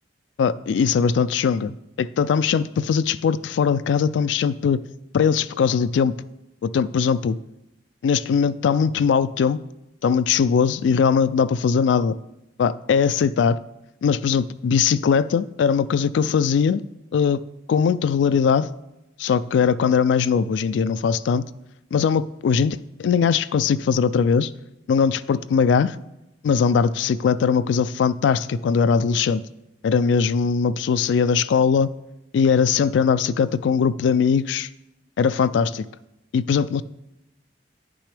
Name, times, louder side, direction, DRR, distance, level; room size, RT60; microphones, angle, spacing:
voice 1, 0.4-4.8 5.1-6.2 6.6-7.4 8.0-9.6 10.0-12.2 12.6-13.6 14.0-16.8 17.1-17.4 17.7-18.7 19.2-21.5 21.9-24.5 24.9-26.0 26.4-29.4 29.8-31.9 32.3-34.7 35.2-35.9 36.3-36.8, left 6 dB, 75° left, 16 dB, 0.3 m, -20 dB
10.0 x 6.1 x 3.4 m, 0.91 s
head